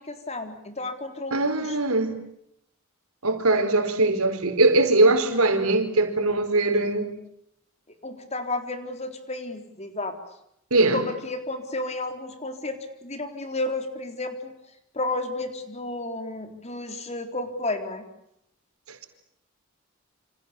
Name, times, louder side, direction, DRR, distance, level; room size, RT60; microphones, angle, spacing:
voice 1, 0.1-1.8 8.0-10.2 10.8-14.5 14.9-18.0, left 2 dB, 30° left, 3.9 m, -32 dB
voice 2, 1.3-2.2 3.2-7.1 10.7-11.0 18.9-19.1, right 2 dB, 90° right, 4.6 m, -21 dB
29.0 x 27.0 x 7.2 m
head